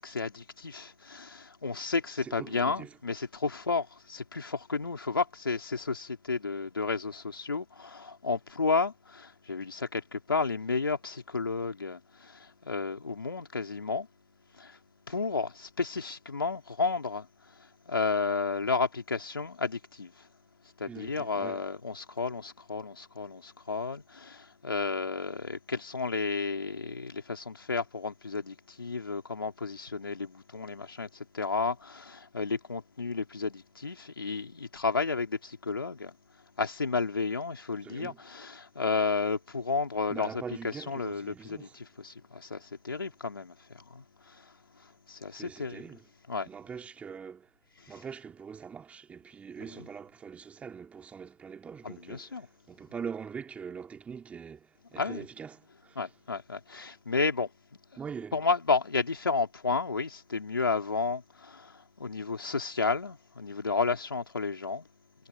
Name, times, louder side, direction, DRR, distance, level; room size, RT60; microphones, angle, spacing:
voice 1, 0.0-14.1 14.5-14.8 15.1-20.3 20.6-46.0 46.3-46.5 47.8-48.0 49.6-49.9 51.8-52.5 55.0-55.3 56.0-58.0 58.3-64.9, left 4 dB, 90° left, 3.9 m, -32 dB
voice 2, 2.4-2.9 20.9-21.6 37.8-38.2 40.1-41.7 45.3-46.0 46.5-47.5 47.9-52.3 52.7-56.0 58.0-58.3, right 6 dB, 10° right, 2.7 m, -43 dB
hypercardioid pair, 135°, 12 cm